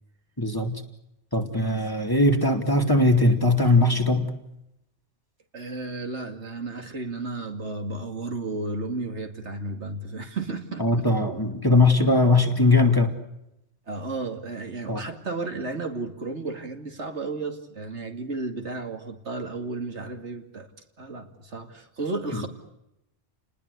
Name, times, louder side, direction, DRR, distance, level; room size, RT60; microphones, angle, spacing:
voice 1, 0.4-0.8 1.3-4.3 10.8-13.1 14.9-15.0 22.3-22.4, left 2 dB, 20° left, 5 dB, 2.6 m, -20 dB
voice 2, 5.5-11.1 13.9-20.7 21.0-22.5, right 3 dB, 75° right, 5 dB, 2.8 m, -33 dB
30.0 x 20.0 x 8.2 m, 0.84 s
omnidirectional pair, 1.2 m